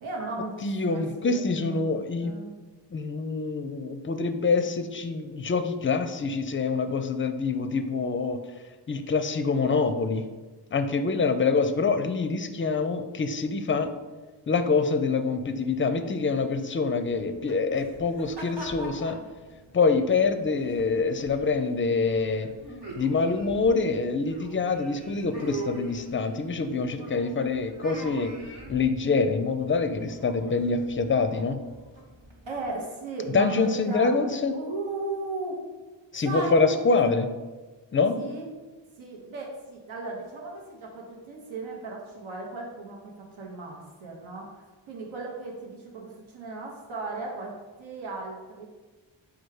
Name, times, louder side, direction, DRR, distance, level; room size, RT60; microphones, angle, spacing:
voice 1, 0.0-2.5 32.5-34.1 34.5-35.6 36.2-36.7 37.0-37.1 38.1-38.5 39.0-48.7, right 3 dB, 80° right, -1 dB, 0.9 m, -36 dB
voice 2, 0.6-2.3 2.9-8.4 8.9-10.2 10.7-13.9 14.5-19.2 19.7-22.5 22.9-28.3 28.7-31.6 33.3-34.5 36.1-37.3 37.9-38.2, left 4 dB, 25° left, 9 dB, 0.4 m, -25 dB
sound 1, 17.1-32.7, right 1 dB, 60° right, 1.2 m, -44 dB
4.4 x 2.4 x 4.7 m, 1.2 s
cardioid pair, 45°, 47 cm